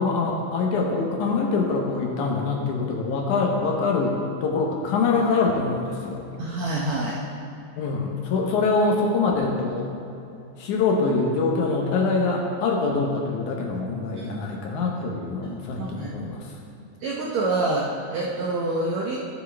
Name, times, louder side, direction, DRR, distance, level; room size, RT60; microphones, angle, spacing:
voice 1, 0.0-6.2 7.8-9.9 10.6-16.4, left 4 dB, 70° left, 0 dB, 2.2 m, -24 dB
voice 2, 6.4-7.2 14.2-14.3 14.7-15.0 15.4-16.1 17.0-19.2, right 2 dB, 70° right, -3 dB, 1.7 m, -27 dB
15.5 x 7.2 x 3.4 m, 2.7 s
omnidirectional pair, 4.1 m